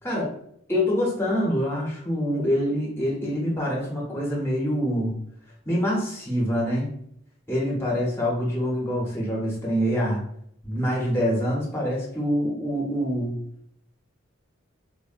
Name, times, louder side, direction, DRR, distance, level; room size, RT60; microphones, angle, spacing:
voice 1, 0.0-0.3 0.7-5.1 5.7-6.9 7.5-10.2 10.6-13.4, equal, 10° left, -4 dB, 0.7 m, -25 dB
3.3 x 2.0 x 2.5 m, 0.68 s
head